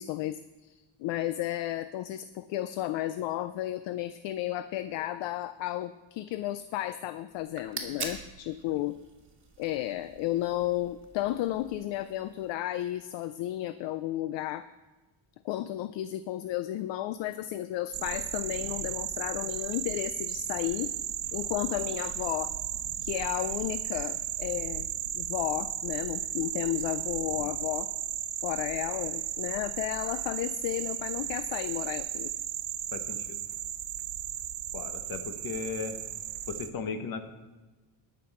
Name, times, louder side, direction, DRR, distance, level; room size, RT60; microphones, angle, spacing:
voice 1, 0.0-9.0 9.6-14.7 15.4-20.9 21.3-22.5 23.0-24.9 25.1-27.9 28.4-32.3, left 14 dB, 65° left, 13 dB, 0.5 m, -33 dB
sound 1, 7.3-12.5, right 4 dB, 25° right, 1.7 m, -44 dB
sound 2, 17.9-36.7, right 11 dB, 65° right, 1.0 m, -35 dB
voice 2, 32.9-33.4 34.7-36.0 36.5-37.2, left 5 dB, 45° left, 8 dB, 1.2 m, -36 dB
18.5 x 6.2 x 4.3 m, 1.2 s
cardioid pair, 130°, 48 cm